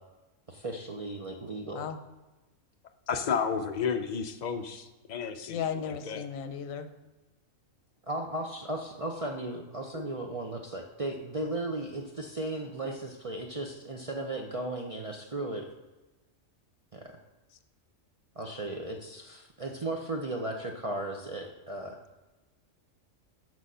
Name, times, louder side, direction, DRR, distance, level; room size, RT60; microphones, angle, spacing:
voice 1, 0.5-1.8 8.1-15.7 16.9-17.1 18.4-22.0, right 2 dB, 40° right, 1 dB, 0.5 m, -36 dB
voice 2, 3.1-5.6 6.0-6.3 9.9-10.0, left 6 dB, 55° left, 7 dB, 0.5 m, -32 dB
voice 3, 5.5-6.9, left 7 dB, 85° left, 9 dB, 1.1 m, -35 dB
6.3 x 6.2 x 5.5 m, 1.1 s
omnidirectional pair, 1.4 m